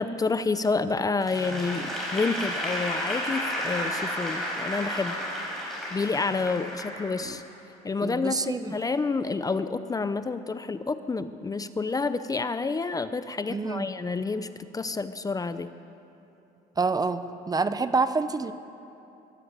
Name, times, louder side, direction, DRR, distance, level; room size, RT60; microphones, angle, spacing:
voice 1, 0.0-5.2 5.9-7.4 7.8-14.5 14.7-15.7, left 4 dB, 20° left, 12 dB, 0.7 m, -29 dB
Applause / Crowd, 1.2-7.6, equal, ahead, 6.2 m, -32 dB
voice 2, 8.0-8.8 13.5-13.9 16.8-18.5, right 4 dB, 20° right, 12 dB, 0.8 m, -27 dB
23.0 x 16.0 x 8.3 m, 2.8 s
cardioid pair, 110°, 17 cm